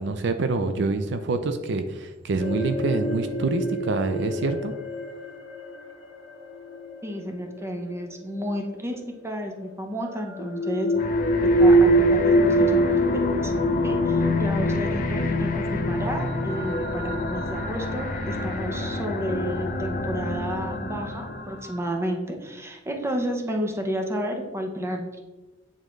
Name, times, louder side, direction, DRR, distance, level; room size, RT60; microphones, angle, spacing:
voice 1, 0.0-4.7, right 3 dB, 65° right, 8 dB, 0.4 m, -26 dB
sound 1, 2.4-8.4 9.6-22.0, right 1 dB, 80° left, 0.9 m, -26 dB
voice 2, 7.0-10.9 11.4-13.0 13.4-13.5 13.8-25.2, equal, 15° right, 3 dB, 0.7 m, -31 dB
sound 2, 10.9-21.6, left 2 dB, 45° left, 0.6 m, -28 dB
8.6 x 3.7 x 3.1 m, 1.2 s
head